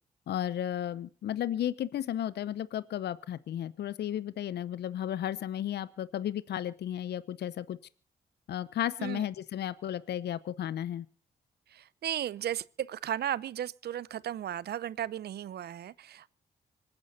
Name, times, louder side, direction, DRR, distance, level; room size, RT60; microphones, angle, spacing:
voice 1, 0.3-7.8 8.5-11.1, left 11 dB, 70° left, 0.8 m, -34 dB
voice 2, 11.7-16.3, right 11 dB, 65° right, 0.7 m, -35 dB
26.0 x 9.7 x 4.1 m
hypercardioid pair, 45°, 18 cm